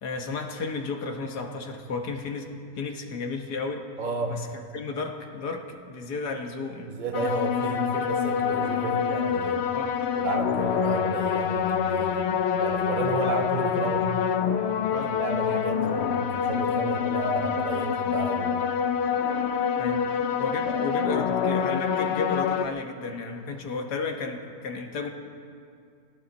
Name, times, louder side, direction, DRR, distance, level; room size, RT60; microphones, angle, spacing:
voice 1, 0.0-3.9 4.3-7.0 9.7-9.9 14.9-15.2 19.8-20.1 20.4-25.1, left 4 dB, 80° left, 4 dB, 1.8 m, -33 dB
voice 2, 4.0-4.4 6.9-9.6 10.2-14.1 14.8-18.7 19.8-20.0 20.7-20.8, right 3 dB, 30° right, 3 dB, 1.3 m, -32 dB
sound 1, 7.1-22.7, left 7 dB, 60° left, 0.7 m, -26 dB
21.0 x 16.5 x 4.1 m, 2.3 s
omnidirectional pair, 1.7 m